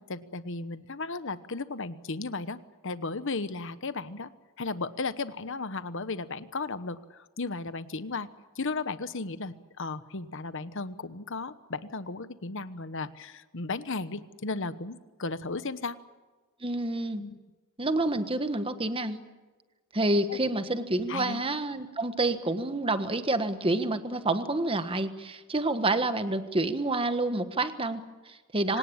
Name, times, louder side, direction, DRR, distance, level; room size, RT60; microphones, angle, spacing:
voice 1, 0.1-2.6 2.8-4.3 4.6-8.3 8.6-16.0 17.2-17.4 20.3-20.4 21.1-21.4 28.7-28.8, left 3 dB, 60° left, 13 dB, 1.1 m, -35 dB
voice 2, 16.6-17.2 17.8-19.2 19.9-28.8, right 2 dB, 25° right, 10 dB, 1.4 m, -28 dB
26.0 x 18.0 x 8.7 m, 1.3 s
head